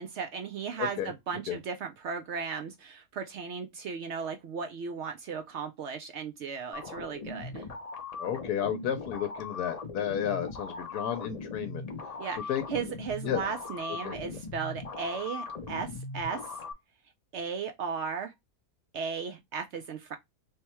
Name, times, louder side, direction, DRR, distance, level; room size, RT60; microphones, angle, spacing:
voice 1, 0.0-7.7 12.2-16.5 17.3-18.3 18.9-20.2, right 6 dB, 70° right, 0.6 m, -36 dB
voice 2, 0.8-1.1 1.5-1.6 8.2-11.8 12.5-12.8 13.2-13.4 14.0-14.2, left 9 dB, 80° left, 1.1 m, -32 dB
sound 1, 6.7-16.7, left 3 dB, 60° left, 0.4 m, -40 dB
3.3 x 2.1 x 4.2 m
omnidirectional pair, 1.6 m